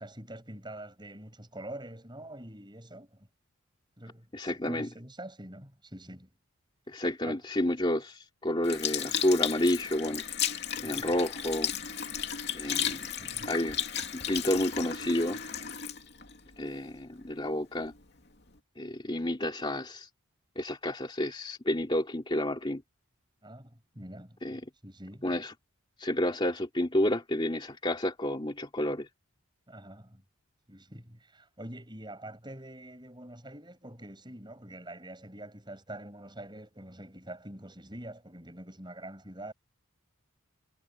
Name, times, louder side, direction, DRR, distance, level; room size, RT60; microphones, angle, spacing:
voice 1, 0.0-3.3 4.0-6.3 7.2-7.4 10.8-11.1 13.0-13.5 23.4-25.4 29.7-30.2 30.7-39.5, right 1 dB, 20° right, 8.0 m, -45 dB
voice 2, 4.3-4.9 6.9-10.2 10.8-11.7 12.5-13.1 13.5-13.8 14.3-15.4 16.6-17.9 18.8-20.1 20.6-22.8 24.4-24.6 25.2-25.5 26.0-29.1, left 1 dB, 20° left, 2.8 m, -30 dB
Sink (filling or washing) / Liquid, 8.6-17.2 17.8-18.0, left 9 dB, 50° left, 2.8 m, -34 dB
head